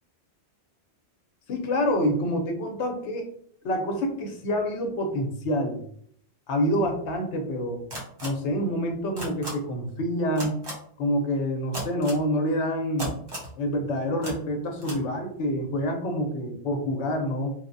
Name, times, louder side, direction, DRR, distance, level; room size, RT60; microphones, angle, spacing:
voice 1, 1.5-3.3 3.6-5.8 6.5-7.8 8.2-10.5 11.0-13.2 13.6-17.5, equal, 85° left, 4 dB, 0.9 m, -27 dB
sound 1, 7.9-8.3 9.2-9.5 10.4-10.7 11.7-12.2 13.0-13.5 14.2-14.3 14.8-15.0, right 1 dB, 25° right, 0.7 m, -34 dB
3.0 x 2.0 x 2.6 m, 0.63 s
omnidirectional pair, 1.2 m